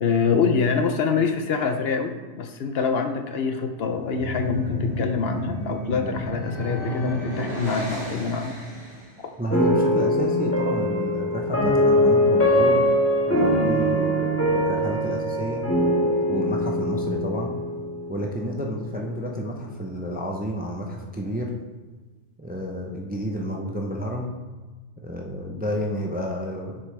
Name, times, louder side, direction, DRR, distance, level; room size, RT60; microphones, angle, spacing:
voice 1, 0.0-8.5 9.2-9.3, left 5 dB, 65° left, 6 dB, 0.8 m, -25 dB
sound 1, 3.8-9.2, left 1 dB, 35° right, 2.1 m, -32 dB
voice 2, 9.4-12.8 13.3-15.6 16.3-17.6 18.1-21.5 22.4-24.3 25.0-26.8, equal, 10° right, 0 dB, 0.5 m, -30 dB
sound 2, 9.5-18.7, equal, 10° left, 1.5 m, -22 dB
7.3 x 6.6 x 3.3 m, 1.3 s
omnidirectional pair, 1.2 m